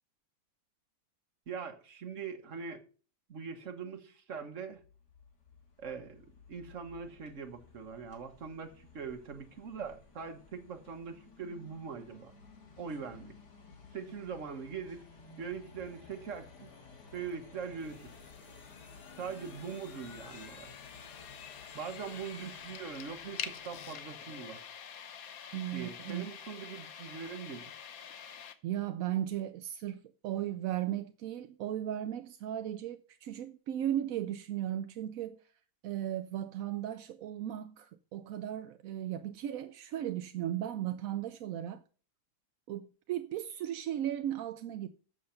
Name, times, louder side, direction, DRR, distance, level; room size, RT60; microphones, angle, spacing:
voice 1, 1.5-2.8 3.3-4.8 5.8-12.3 12.8-13.3 13.9-15.0 15.4-16.7 17.1-18.1 19.2-20.7 21.7-24.6 25.7-27.7, right 6 dB, 50° right, 1.6 m, -42 dB
sound 1, 4.7-24.5, left 4 dB, 85° left, 2.5 m, -55 dB
sound 2, 17.8-28.5, left 8 dB, 65° left, 1.2 m, -47 dB
voice 2, 25.5-26.3 28.6-35.4 35.8-41.8 42.7-44.9, right 11 dB, 70° right, 0.9 m, -36 dB
7.7 x 6.6 x 5.7 m
omnidirectional pair, 1.7 m